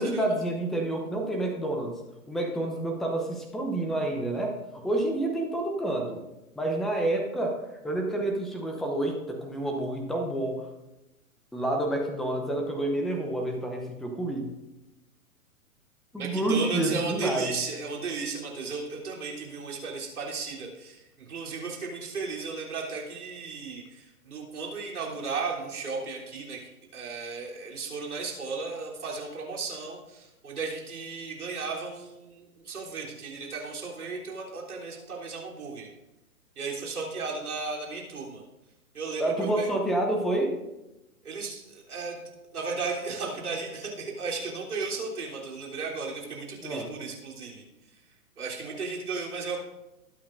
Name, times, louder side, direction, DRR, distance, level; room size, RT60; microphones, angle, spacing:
voice 1, 0.0-2.0 2.3-6.2 6.6-7.6 7.8-10.7 11.5-14.5 16.1-17.5 39.2-40.6 46.6-46.9, right 1 dB, ahead, 2 dB, 0.7 m, -29 dB
voice 2, 16.2-21.0 21.3-35.9 36.6-38.4 38.9-39.7 41.2-42.2 42.5-47.6 48.4-49.6, right 4 dB, 70° right, -3 dB, 3.6 m, -35 dB
20.0 x 8.6 x 2.6 m, 0.98 s
figure-of-eight pair, 120°, 45 cm